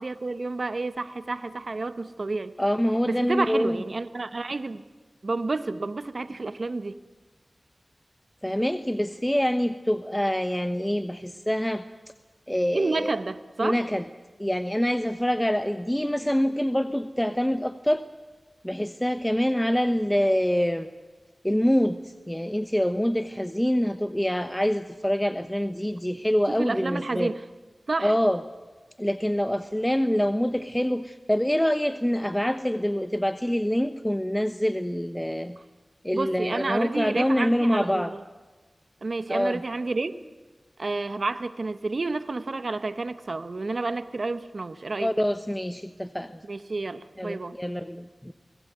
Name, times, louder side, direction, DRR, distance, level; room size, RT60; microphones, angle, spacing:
voice 1, 0.0-2.5 3.1-4.8 5.2-7.0 12.7-13.8 26.6-27.4 27.9-28.2 36.1-38.2 39.0-40.2 40.8-45.1 46.5-47.6, right 3 dB, 70° right, 12 dB, 1.2 m, -30 dB
voice 2, 2.6-3.8 8.4-11.9 12.5-13.1 13.6-14.0 14.4-18.0 18.6-20.9 21.4-27.3 28.0-28.4 29.0-35.6 36.0-38.1 39.3-39.6 45.0-46.4 47.2-48.3, equal, 10° left, 10 dB, 1.1 m, -25 dB
28.5 x 20.0 x 9.4 m, 1.3 s
cardioid pair, 40°, 0 cm